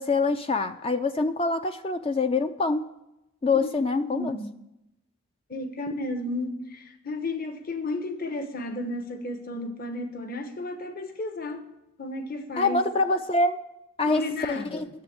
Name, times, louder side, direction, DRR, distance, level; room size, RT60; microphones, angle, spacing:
voice 1, 0.0-2.9 3.4-4.4 12.6-13.6 14.0-14.9, left 3 dB, 30° left, 0.4 m, -25 dB
voice 2, 4.0-4.5 5.5-11.7 12.0-12.8 14.0-14.9, left 2 dB, 45° left, 1.1 m, -33 dB
10.5 x 7.2 x 8.6 m
head